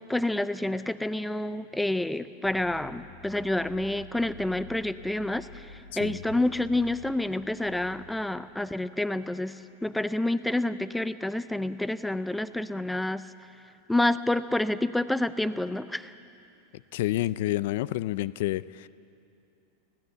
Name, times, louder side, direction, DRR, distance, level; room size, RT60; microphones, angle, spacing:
voice 1, 0.0-5.7 6.0-13.2 13.9-16.1, left 1 dB, 5° left, 14 dB, 0.5 m, -28 dB
sound 1, 2.4-8.5, left 3 dB, 85° left, 3.3 m, -49 dB
voice 2, 16.9-18.9, left 15 dB, 65° left, 18 dB, 0.4 m, -29 dB
20.0 x 16.0 x 8.0 m, 2.7 s
supercardioid pair, 145°, 0 cm